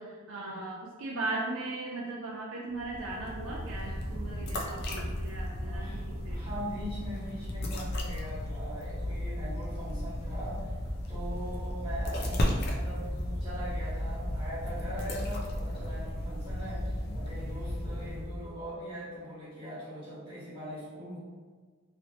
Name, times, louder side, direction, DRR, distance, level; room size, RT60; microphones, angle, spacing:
voice 1, 0.0-6.4, right 2 dB, 65° right, -3 dB, 0.4 m, -38 dB
sound 1, 2.7-18.6, left 1 dB, 50° left, 0.5 m, -34 dB
voice 2, 5.7-10.7 11.1-21.2, equal, 25° right, -11 dB, 1.3 m, -41 dB
3.0 x 2.8 x 2.8 m, 1.6 s
head